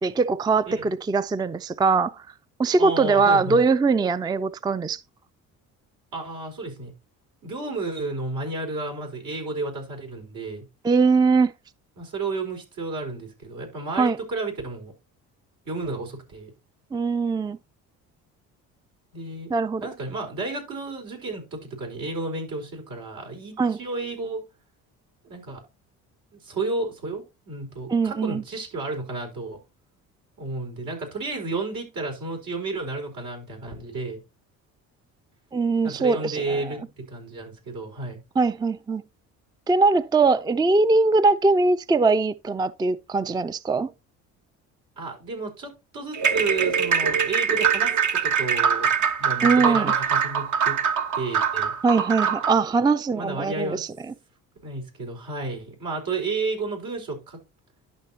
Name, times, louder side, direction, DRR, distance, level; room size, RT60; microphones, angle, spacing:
voice 1, 0.0-2.3 2.6-5.0 10.8-11.5 14.0-14.2 16.9-17.6 19.5-19.9 23.6-23.8 27.9-28.4 35.5-36.8 38.4-39.0 39.7-43.9 49.4-49.9 51.8-54.1, right 4 dB, 10° right, 0.4 m, -21 dB
voice 2, 2.8-3.6 6.1-6.9 7.4-10.6 12.0-14.9 15.6-16.5 19.1-19.5 19.8-24.4 25.3-25.6 26.3-29.6 30.4-34.2 35.8-38.2 45.0-48.9 49.2-50.8 51.1-51.7 53.2-53.8 54.6-57.4, right 3 dB, 75° right, 4.7 m, -32 dB
sound 1, 46.1-52.6, right 7 dB, 55° right, 1.2 m, -23 dB
11.5 x 6.0 x 2.8 m
supercardioid pair, 70°, 35 cm